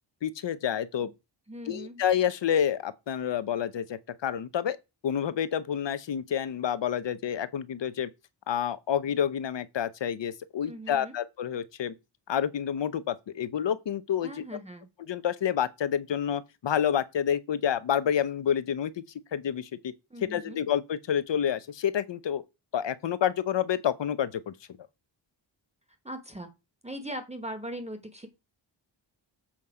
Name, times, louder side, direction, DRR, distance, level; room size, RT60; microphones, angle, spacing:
voice 1, 0.2-1.1 1.7-4.8 5.0-8.1 8.5-11.9 12.3-14.4 15.1-19.0 19.3-19.9 20.2-22.4 22.7-24.5, left 9 dB, 65° left, 0.8 m, -29 dB
voice 2, 1.5-2.0 10.7-11.1 14.2-14.9 20.1-20.6 26.0-26.5 26.8-28.3, right 1 dB, 15° right, 1.1 m, -40 dB
7.4 x 5.4 x 4.8 m
wide cardioid pair, 175°, 46 cm